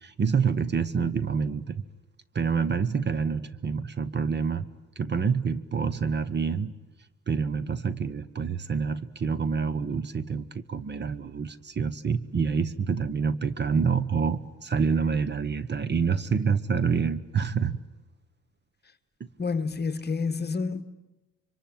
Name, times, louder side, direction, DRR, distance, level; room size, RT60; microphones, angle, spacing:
voice 1, 0.0-1.8 2.3-4.7 5.0-6.8 7.3-17.8, right 6 dB, 35° right, 1.1 m, -27 dB
voice 2, 19.4-20.8, left 4 dB, 35° left, 1.3 m, -29 dB
26.5 x 24.0 x 9.3 m
cardioid pair, 90°, 30 cm